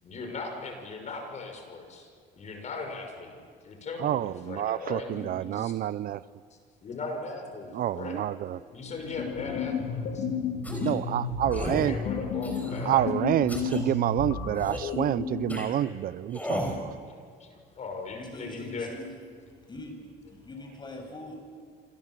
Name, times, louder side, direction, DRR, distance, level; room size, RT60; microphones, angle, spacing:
voice 1, 0.0-2.1 2.3-5.7 6.8-8.3 8.7-10.3 11.5-13.3 13.8-14.0 17.4-18.9, left 3 dB, 45° left, 4 dB, 6.1 m, -39 dB
voice 2, 4.0-6.2 7.7-8.6 10.8-11.9 12.9-16.9, right 12 dB, 60° right, 18 dB, 0.6 m, -28 dB
sound 1, 8.7-15.8, left 5 dB, 80° left, 3.5 m, -33 dB
sound 2, 10.6-11.0 11.5-11.9 12.4-12.9 13.5-13.8 14.6-14.9 15.5-15.7 16.3-16.8, equal, 10° left, 5.7 m, -34 dB
voice 3, 18.2-19.1 19.4-21.3, left 2 dB, 25° left, 2 dB, 7.7 m, -43 dB
27.0 x 26.0 x 7.6 m, 2.1 s
cardioid pair, 110°, 17 cm